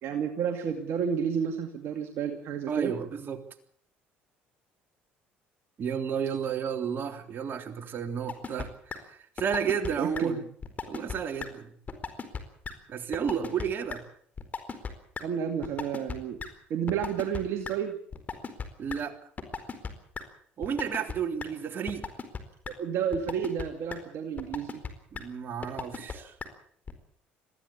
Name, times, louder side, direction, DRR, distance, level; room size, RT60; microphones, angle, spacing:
voice 1, 0.0-2.9 10.0-10.5 15.2-16.4 16.7-18.0 22.8-24.8, right 7 dB, 65° right, 4 dB, 2.4 m, -31 dB
voice 2, 2.7-3.4 5.8-10.4 10.9-11.7 12.9-14.0 18.8-19.2 20.6-22.1 25.1-26.3, right 7 dB, 45° right, 6 dB, 3.4 m, -32 dB
sound 1, 8.3-8.7 8.9-9.0 9.4-9.9 10.1-10.2 10.6-11.2 11.4-11.5 11.9-12.4 12.6-12.7 13.1-13.6 13.9-14.0 14.4-14.9 15.2-15.3 15.6-16.1 16.4-16.5 16.9-17.7 18.1-19.0 19.4-19.9 20.1-20.2 20.6-21.1 21.4-21.5 21.9-22.4 22.6-22.7 23.1-23.6 23.9-24.0 24.4-24.9 25.1-25.2 25.6-26.1 26.4-26.5 26.9-27.0, left 5 dB, 35° left, 4.3 m, -35 dB
21.5 x 15.5 x 8.7 m, 0.62 s
supercardioid pair, 75°, 5 cm